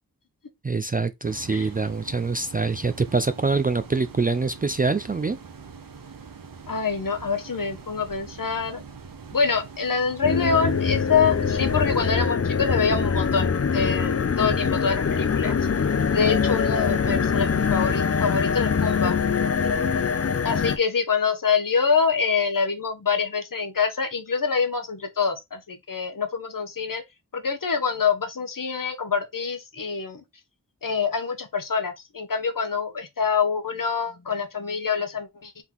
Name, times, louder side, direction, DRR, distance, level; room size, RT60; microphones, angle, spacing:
voice 1, 0.6-5.4, right 4 dB, 25° right, 0.3 m, -25 dB
sound 1, 1.2-12.1, right 5 dB, 60° right, 0.8 m, -43 dB
voice 2, 6.7-8.8 9.3-15.6 16.1-19.2 20.4-27.0 27.3-30.2 30.8-35.6, left 5 dB, 60° left, 1.0 m, -25 dB
sound 2, 10.2-20.8, left 6 dB, 40° left, 0.5 m, -23 dB
3.9 x 3.6 x 3.0 m
wide cardioid pair, 55°, 38 cm